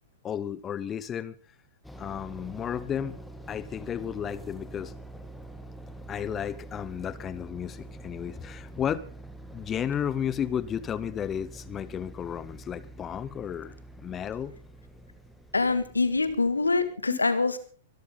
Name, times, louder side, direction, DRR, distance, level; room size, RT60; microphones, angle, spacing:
voice 1, 0.2-1.3 2.0-3.2 3.5-4.9 6.1-9.1 9.5-13.7 14.0-14.5 17.1-17.2, left 9 dB, 20° left, 0.7 m, -33 dB
sound 1, 1.8-16.9, right 1 dB, 5° left, 1.9 m, -46 dB
voice 2, 15.5-17.6, left 3 dB, 85° left, 2.0 m, -25 dB
24.0 x 13.0 x 3.9 m
figure-of-eight pair, 105°, 0 cm